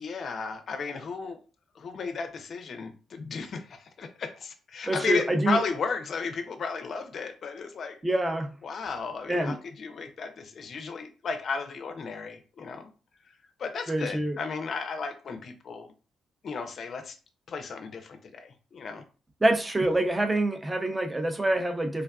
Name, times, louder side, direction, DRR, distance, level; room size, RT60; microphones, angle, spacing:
voice 1, 0.0-1.4 1.7-8.0 8.6-12.9 13.6-15.9 16.4-17.1 17.5-19.0, left 4 dB, 50° left, 7 dB, 0.5 m, -34 dB
voice 2, 4.9-5.6 8.0-8.5 9.3-9.6 13.9-14.4 19.4-22.0, right 1 dB, 15° right, 5 dB, 0.5 m, -26 dB
3.3 x 2.3 x 2.3 m, 0.35 s
cardioid pair, 125°, 0 cm